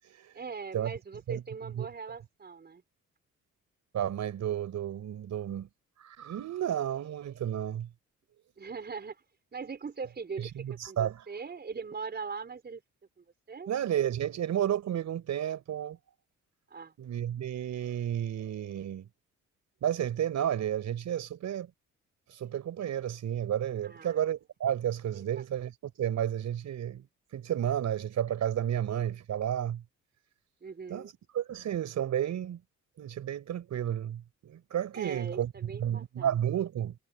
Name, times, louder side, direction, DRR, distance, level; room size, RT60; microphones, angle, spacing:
voice 1, 0.3-2.8 8.6-9.2 9.5-12.8 13.2-13.7 16.7-16.9 23.8-24.2 25.1-25.4 30.6-31.1 34.9-36.4, right 5 dB, 35° right, 4.4 m, -41 dB
voice 2, 3.9-5.7 6.0-7.9 10.6-11.2 13.7-16.0 17.0-19.1 19.8-21.7 22.3-27.1 27.3-29.8 30.9-32.6 33.0-35.5 35.8-36.9, right 10 dB, 65° right, 4.9 m, -32 dB
cardioid pair, 90°, 30 cm